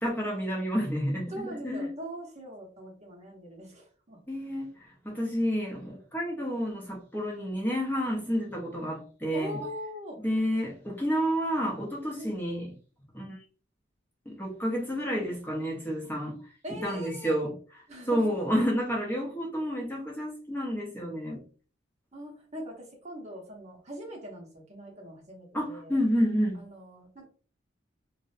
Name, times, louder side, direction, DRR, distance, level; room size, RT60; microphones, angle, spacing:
voice 1, 0.0-1.9 4.3-9.6 10.2-12.7 13.1-13.4 14.3-16.4 16.7-21.4 25.5-26.6, equal, 10° left, 0.6 m, -30 dB
voice 2, 1.3-4.3 9.3-10.2 12.2-12.4 16.6-17.4 17.9-18.4 22.1-26.0 26.5-27.3, equal, 35° right, 0.8 m, -41 dB
2.6 x 2.0 x 2.4 m
head